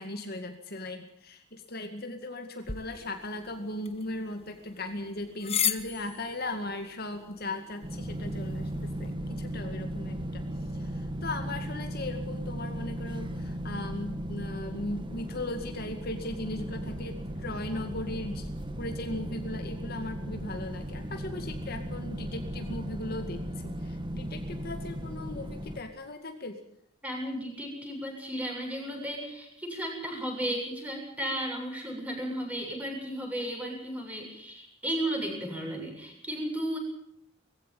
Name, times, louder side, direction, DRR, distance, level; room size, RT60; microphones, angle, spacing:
voice 1, 0.0-10.4 10.7-18.5 18.8-26.6, left 2 dB, 50° left, 5 dB, 2.2 m, -38 dB
sound 1, 2.6-9.1, left 9 dB, 30° left, 1.3 m, -37 dB
sound 2, 7.8-25.8, equal, 25° right, 1.9 m, -36 dB
voice 2, 27.0-36.8, right 1 dB, 5° right, 1 dB, 7.8 m, -34 dB
21.0 x 16.0 x 9.2 m, 0.70 s
head